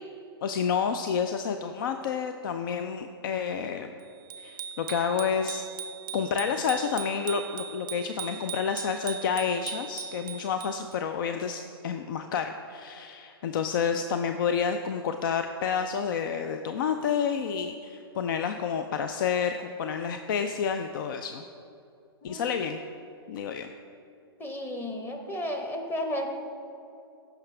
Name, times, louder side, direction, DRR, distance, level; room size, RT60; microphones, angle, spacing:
voice 1, 0.4-3.9 4.4-5.6 6.1-21.4 22.2-22.8 23.3-23.7, left 7 dB, 55° left, 8 dB, 0.5 m, -29 dB
Bicycle bell, 4.3-11.0, right 7 dB, 55° right, 0.4 m, -39 dB
voice 2, 22.2-22.6 24.4-26.3, left 1 dB, 15° left, 3 dB, 1.1 m, -33 dB
14.5 x 6.0 x 3.3 m, 2.5 s
hypercardioid pair, 120°, 13 cm